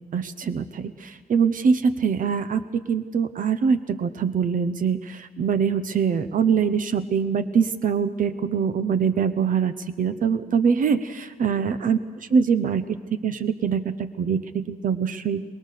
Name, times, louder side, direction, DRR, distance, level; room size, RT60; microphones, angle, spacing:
voice 1, 0.1-15.4, right 6 dB, 60° right, 11 dB, 0.9 m, -23 dB
23.5 x 21.0 x 6.7 m, 1.3 s
wide cardioid pair, 155°, 16 cm